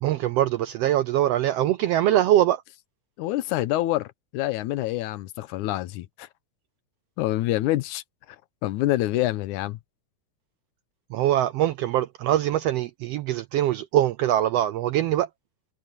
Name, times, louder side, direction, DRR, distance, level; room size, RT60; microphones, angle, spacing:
voice 1, 0.0-2.6 11.1-15.3, right 12 dB, 80° right, 1.4 m, -23 dB
voice 2, 3.2-4.1 4.3-6.3 7.2-8.0 8.6-9.8, left 15 dB, 90° left, 2.2 m, -26 dB
omnidirectional pair, 3.4 m